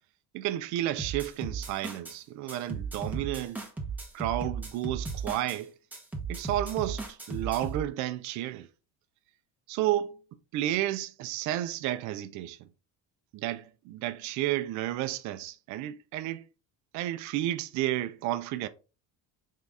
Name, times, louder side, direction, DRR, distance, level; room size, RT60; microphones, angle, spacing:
voice 1, 0.3-3.6 4.1-5.7 6.3-8.7 9.7-10.2 10.5-12.7 13.3-16.4 16.9-18.7, right 13 dB, 55° right, 0.5 m, -32 dB
sound 1, 1.0-2.2 2.5-5.6 5.9-7.8, right 4 dB, 5° right, 0.8 m, -36 dB
4.0 x 3.7 x 3.3 m
cardioid pair, 145°, 34 cm